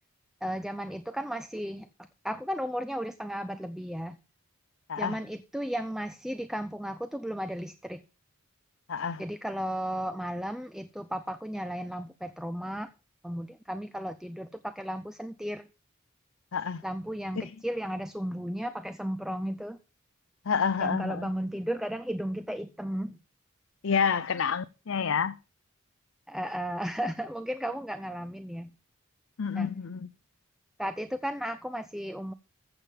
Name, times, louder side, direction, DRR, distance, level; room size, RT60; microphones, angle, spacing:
voice 1, 0.4-1.9 2.2-4.2 5.0-8.0 9.2-12.9 13.2-15.7 16.8-19.8 20.8-23.2 26.3-28.7 29.6-29.7 30.8-32.3, equal, ahead, 0.5 m, -34 dB
voice 2, 4.9-5.2 8.9-9.2 16.5-16.8 17.4-17.6 20.4-21.3 23.8-25.4 29.4-30.1, left 6 dB, 70° left, 0.6 m, -29 dB
14.5 x 7.3 x 5.2 m
head